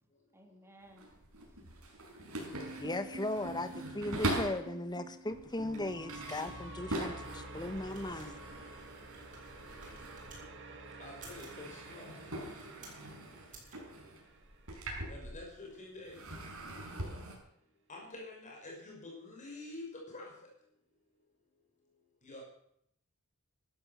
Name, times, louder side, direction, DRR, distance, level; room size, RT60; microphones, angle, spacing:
voice 1, 0.3-2.7, right 1 dB, 10° right, 3.0 m, -62 dB
sound 1, 0.8-4.7 5.3-10.6 10.9-15.7 16.0-17.4, right 1 dB, 85° right, 5.5 m, -42 dB
sound 2, 2.5-14.7, right 2 dB, 60° right, 2.4 m, -49 dB
voice 2, 2.8-8.4, left 2 dB, 20° left, 1.3 m, -37 dB
sound 3, 7.4-10.5 11.1-11.6 12.3-13.1 13.5-13.8, right 2 dB, 40° right, 6.3 m, -55 dB
voice 3, 11.0-12.2 15.1-16.2 17.9-20.3 22.2-22.4, left 2 dB, 35° left, 5.9 m, -47 dB
15.5 x 12.5 x 7.1 m
head